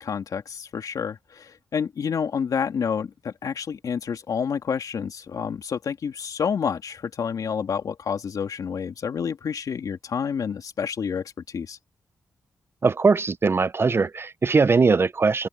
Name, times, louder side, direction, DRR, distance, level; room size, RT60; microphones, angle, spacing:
voice 1, 0.0-11.8, left 7 dB, 75° left, 3.1 m, -29 dB
voice 2, 12.8-15.5, right 4 dB, 40° right, 0.6 m, -20 dB
cardioid pair, 75°, 6 cm